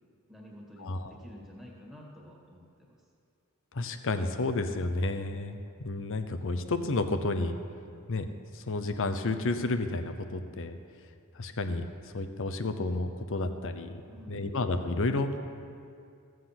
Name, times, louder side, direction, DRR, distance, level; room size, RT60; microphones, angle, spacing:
voice 1, 0.3-3.0 14.1-14.5, equal, ahead, -3 dB, 1.9 m, -49 dB
voice 2, 0.8-1.1 3.7-7.6 8.1-8.3 8.5-10.8 11.3-11.8 12.1-14.0 14.3-15.3, left 2 dB, 60° left, 9 dB, 0.8 m, -31 dB
15.0 x 7.6 x 5.9 m, 2.4 s
head